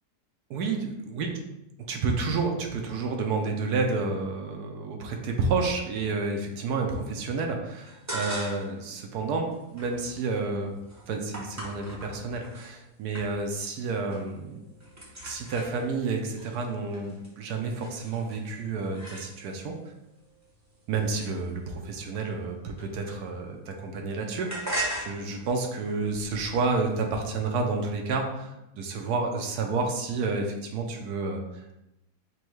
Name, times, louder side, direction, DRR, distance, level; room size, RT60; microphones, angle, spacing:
voice 1, 0.5-1.3 1.9-10.8 11.1-14.7 15.2-19.8 20.9-31.8, right 4 dB, 80° right, 2 dB, 1.2 m, -30 dB
sound 1, 7.9-8.8 9.2-12.7 13.1-13.7 13.9-14.4 14.6-19.7 20.3-23.6 23.8-27.0, right 1 dB, 15° right, 0.6 m, -40 dB
6.3 x 2.3 x 3.1 m, 0.90 s
omnidirectional pair, 1.7 m